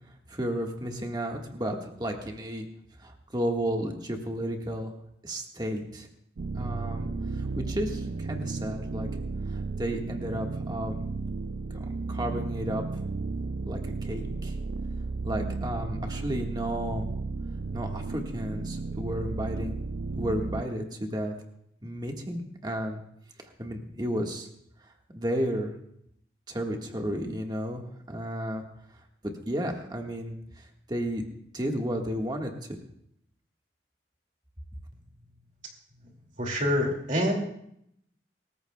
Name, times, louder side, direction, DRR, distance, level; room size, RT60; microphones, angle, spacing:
voice 1, 0.3-2.7 3.0-4.9 5.2-6.1 6.6-9.1 9.5-11.0 11.7-13.0 13.7-14.6 15.2-17.1 17.7-19.8 20.2-21.3 21.8-23.0 23.4-24.5 24.8-25.7 26.5-28.6 29.2-31.3 31.5-32.8, equal, 25° right, 2 dB, 1.6 m, -33 dB
sound 1, 6.4-20.6, right 3 dB, 70° right, 0.5 m, -34 dB
voice 2, 36.4-37.3, equal, 45° right, 1 dB, 2.4 m, -26 dB
26.0 x 14.0 x 2.3 m, 0.73 s
head